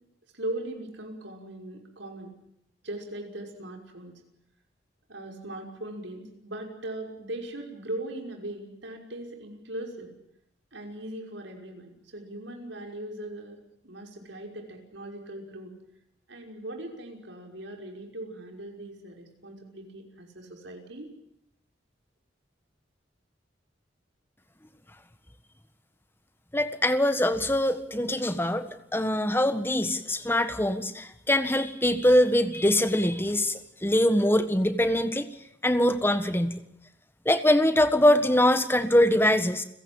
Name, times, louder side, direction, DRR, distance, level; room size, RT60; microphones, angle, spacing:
voice 1, 0.3-2.3 2.8-4.2 5.1-10.1 10.7-13.6 13.8-15.7 16.3-21.1, right 1 dB, 75° right, 2 dB, 5.8 m, -39 dB
voice 2, 26.5-35.3 35.6-36.6 37.2-39.6, left 1 dB, 10° left, 10 dB, 1.5 m, -23 dB
30.0 x 16.5 x 9.0 m, 0.78 s
head